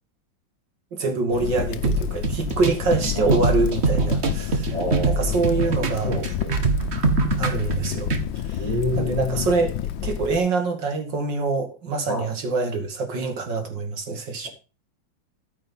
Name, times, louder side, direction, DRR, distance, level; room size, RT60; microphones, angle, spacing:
voice 1, 0.9-4.7 5.1-6.2 7.4-8.1 8.4-8.7 9.0-9.7 10.0-14.5, right 3 dB, 70° right, 2.7 m, -25 dB
Crackle, 1.3-10.4, left 10 dB, 80° left, 1.5 m, -30 dB
sound 1, 1.8-8.2, right 4 dB, 40° right, 1.3 m, -24 dB
voice 2, 3.1-3.6 4.7-6.6 8.6-9.5 12.1-12.3 14.4-14.5, left 1 dB, 20° left, 3.7 m, -30 dB
13.5 x 5.6 x 5.4 m
omnidirectional pair, 2.1 m